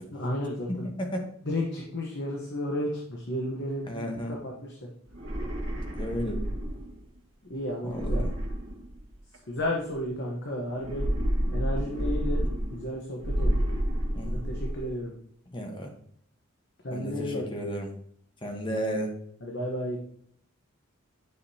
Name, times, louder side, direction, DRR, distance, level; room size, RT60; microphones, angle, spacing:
voice 1, 0.1-0.9 1.4-4.9 7.5-8.3 9.5-11.1 11.5-13.6 14.3-15.1 16.8-17.4 19.4-20.0, left 1 dB, 50° left, -1 dB, 1.1 m, -33 dB
voice 2, 3.8-4.3 5.9-6.4 7.8-8.3 14.1-14.5 15.5-15.9 16.9-17.9 18.4-19.1, equal, 25° left, 3 dB, 1.1 m, -33 dB
sound 1, 5.1-7.0 7.9-9.4 10.7-12.9 13.2-14.9, equal, 60° right, 1.8 m, -29 dB
9.8 x 5.1 x 2.8 m, 0.63 s
head